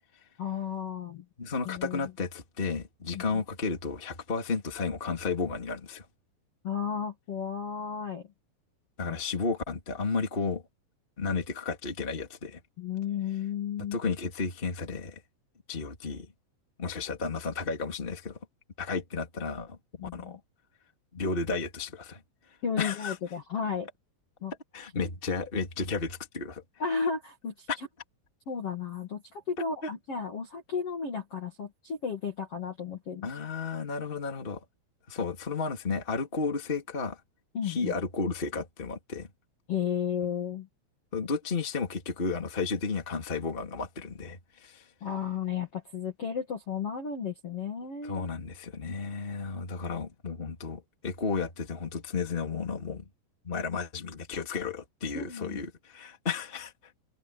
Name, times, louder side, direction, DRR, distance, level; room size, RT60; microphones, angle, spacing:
voice 1, 0.4-1.2 1.6-2.1 3.1-3.2 6.6-8.2 9.1-9.2 12.8-14.0 20.0-20.4 22.6-23.9 24.4-24.5 24.8-24.9 26.8-27.9 28.5-33.3 37.5-38.0 39.7-40.7 45.0-48.3 55.1-55.6, left 6 dB, 40° left, 2.3 m, -33 dB
voice 2, 1.4-6.0 9.0-10.6 11.2-12.6 13.9-15.2 15.7-16.3 16.8-18.4 18.8-20.4 21.1-22.2 22.8-23.1 24.7-26.6 27.7-27.8 29.8-29.9 33.2-34.6 35.1-37.2 37.6-39.3 41.1-44.8 48.0-53.0 53.4-56.7, left 4 dB, 15° left, 2.1 m, -33 dB
omnidirectional pair, 5.8 m